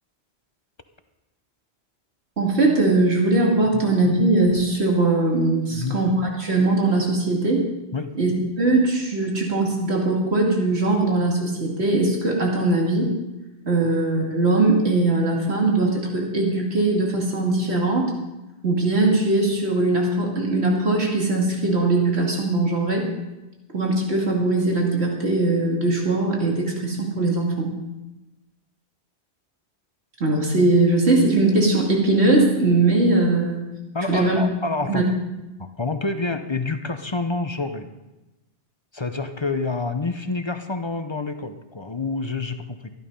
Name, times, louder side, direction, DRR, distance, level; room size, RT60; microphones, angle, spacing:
voice 1, 2.4-7.6 8.2-8.3 8.6-13.1 13.6-18.1 18.6-23.1 23.7-27.7 30.2-33.7 34.1-34.4 34.9-35.0, right 2 dB, 70° right, -1 dB, 2.7 m, -20 dB
voice 2, 33.9-35.0 35.6-37.9 38.9-42.9, left 3 dB, 30° left, 8 dB, 0.7 m, -28 dB
13.5 x 11.5 x 5.4 m, 1.0 s
omnidirectional pair, 1.1 m